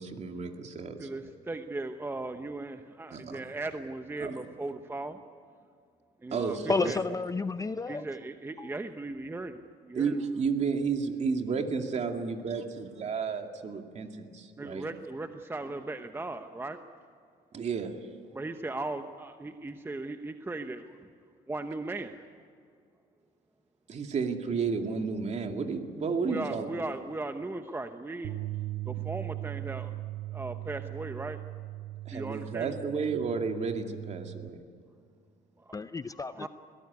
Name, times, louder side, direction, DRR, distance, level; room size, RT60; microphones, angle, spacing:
voice 1, 0.0-1.1 3.1-3.4 4.2-4.3 6.3-6.9 9.9-14.9 17.5-18.0 23.9-26.7 32.1-34.6, right 5 dB, 40° right, 2.5 m, -32 dB
voice 2, 1.0-5.2 6.2-7.0 7.9-10.2 14.6-16.8 18.3-21.1 21.5-22.2 26.2-28.3 28.8-30.0 30.3-31.4 32.1-32.8 35.6-35.8 36.3-36.5, right 2 dB, 15° right, 0.9 m, -37 dB
voice 3, 6.7-8.0 8.6-8.7 35.7-36.5, left 4 dB, 20° left, 0.6 m, -31 dB
Bass guitar, 28.2-34.5, right 16 dB, 65° right, 0.9 m, -39 dB
22.0 x 17.5 x 9.7 m
cardioid pair, 110°, 17 cm